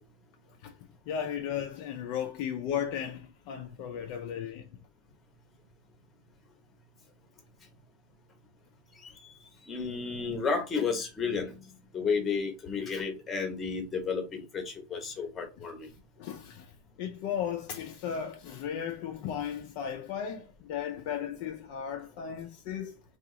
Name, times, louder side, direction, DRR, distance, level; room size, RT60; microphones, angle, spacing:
voice 1, 1.1-4.7 16.2-23.0, left 8 dB, 50° left, 0.4 m, -35 dB
voice 2, 9.7-15.9, left 5 dB, 20° left, 0.8 m, -32 dB
2.9 x 2.4 x 3.6 m
supercardioid pair, 160°, 0 cm